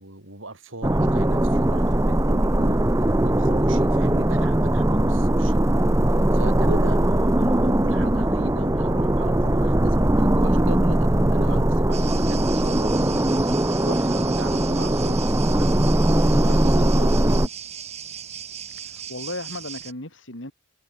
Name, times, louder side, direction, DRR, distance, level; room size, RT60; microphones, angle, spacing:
voice 1, 0.0-5.6 6.3-13.5 13.8-15.7 16.1-17.4, right 2 dB, 90° right, 5.1 m, -38 dB
sound 1, 0.8-17.5, right 1 dB, 15° right, 0.8 m, -20 dB
sound 2, 11.9-19.9, right 8 dB, 35° right, 2.3 m, -37 dB
voice 2, 18.7-20.5, left 2 dB, 75° left, 6.4 m, -36 dB
head